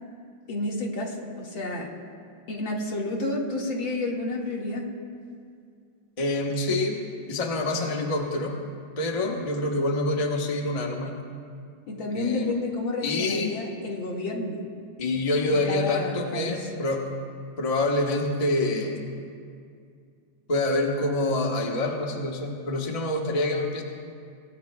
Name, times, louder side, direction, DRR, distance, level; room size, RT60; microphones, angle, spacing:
voice 1, 0.5-1.9 2.5-4.9 11.9-14.6 15.5-16.6, left 2 dB, 75° left, -2 dB, 2.8 m, -30 dB
voice 2, 6.2-7.0 7.3-8.6 9.0-11.2 12.1-12.5 13.0-13.6 15.0-17.1 17.6-19.0 20.5-23.8, left 2 dB, 20° left, 0 dB, 1.1 m, -26 dB
27.0 x 17.5 x 2.3 m, 2.3 s
omnidirectional pair, 2.2 m